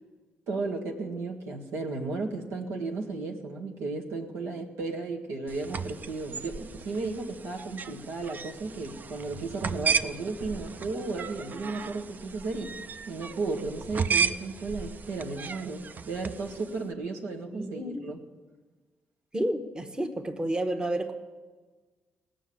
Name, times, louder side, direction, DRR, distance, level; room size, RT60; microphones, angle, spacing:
voice 1, 0.5-12.8 13.1-18.2, right 3 dB, 90° right, 1 dB, 1.7 m, -34 dB
sound 1, 5.5-16.8, right 6 dB, 45° right, 0.6 m, -34 dB
voice 2, 17.5-18.1 19.3-21.1, right 1 dB, 20° right, 6 dB, 1.2 m, -30 dB
17.5 x 6.2 x 8.6 m, 1.4 s
cardioid pair, 85°, 4 cm